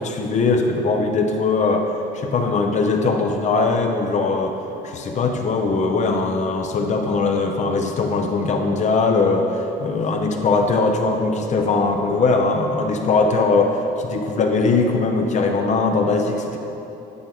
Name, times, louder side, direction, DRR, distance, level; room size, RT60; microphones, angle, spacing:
voice 1, 0.0-4.6 4.8-16.6, left 3 dB, 45° left, 3 dB, 0.7 m, -20 dB
10.0 x 4.8 x 3.5 m, 2.9 s
cardioid pair, 110°, 17 cm